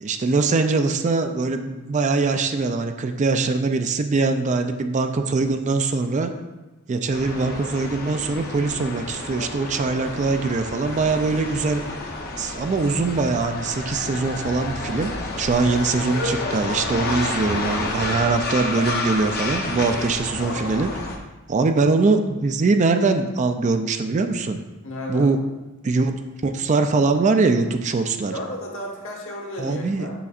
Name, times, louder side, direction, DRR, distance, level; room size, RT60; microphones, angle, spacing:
voice 1, 0.0-6.3 6.9-11.8 12.4-20.9 21.5-24.6 25.1-25.4 25.8-26.1 26.4-28.3 29.6-30.1, right 3 dB, 35° right, 7 dB, 0.4 m, -22 dB
sound 1, 7.1-21.2, left 2 dB, 50° left, 0.8 m, -30 dB
voice 2, 16.9-17.4 24.8-25.3 28.3-30.1, left 1 dB, 65° left, -1 dB, 1.4 m, -33 dB
6.9 x 6.1 x 2.4 m, 1.1 s
head